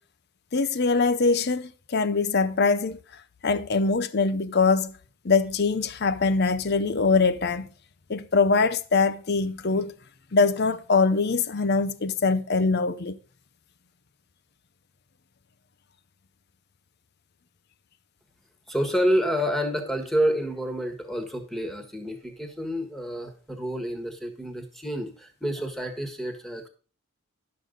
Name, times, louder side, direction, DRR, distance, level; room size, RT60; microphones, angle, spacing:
voice 1, 0.5-3.0 3.4-4.9 5.2-7.7 8.1-9.9 10.3-13.2, left 4 dB, 45° left, 0.6 m, -23 dB
voice 2, 18.7-26.7, equal, ahead, 1.4 m, -28 dB
11.5 x 6.6 x 3.9 m
head